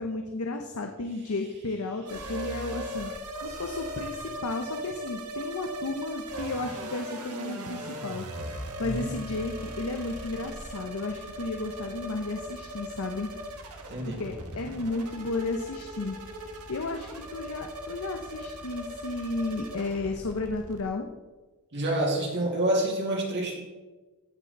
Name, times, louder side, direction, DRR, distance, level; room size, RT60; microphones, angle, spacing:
voice 1, 0.0-3.1 3.4-13.3 14.0-16.2 16.7-21.1, left 2 dB, 70° left, 4 dB, 0.8 m, -33 dB
sound 1, 2.1-20.8, equal, 80° right, 1.5 m, -39 dB
voice 2, 8.8-9.2 13.9-14.2 21.7-23.6, right 1 dB, 50° right, -1 dB, 2.4 m, -28 dB
15.5 x 5.9 x 4.2 m, 1.2 s
head